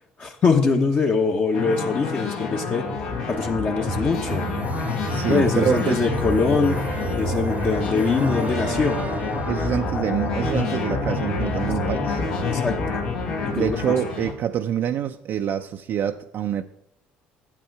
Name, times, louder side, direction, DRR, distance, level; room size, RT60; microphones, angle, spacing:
voice 1, 0.2-2.9 3.3-4.5 5.3-6.8 7.1-9.0 11.6-11.7 12.5-13.0 13.4-13.9, left 4 dB, 40° left, 1.0 m, -23 dB
sound 1, 1.5-14.3, left 3 dB, 80° left, 2.0 m, -27 dB
sound 2, 3.9-9.5, right 4 dB, 35° right, 0.8 m, -32 dB
voice 2, 5.1-6.0 9.5-12.2 13.5-16.6, right 9 dB, 55° right, 0.5 m, -26 dB
9.0 x 7.6 x 4.7 m
supercardioid pair, 75°, 4 cm